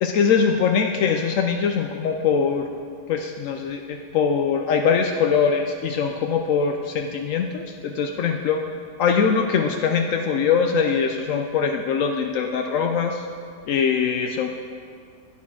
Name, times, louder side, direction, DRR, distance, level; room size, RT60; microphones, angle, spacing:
voice 1, 0.0-2.7 3.1-8.6 9.0-13.2 13.7-14.5, left 6 dB, 85° left, 4 dB, 0.7 m, -22 dB
10.0 x 9.5 x 3.7 m, 2.2 s
omnidirectional pair, 1.9 m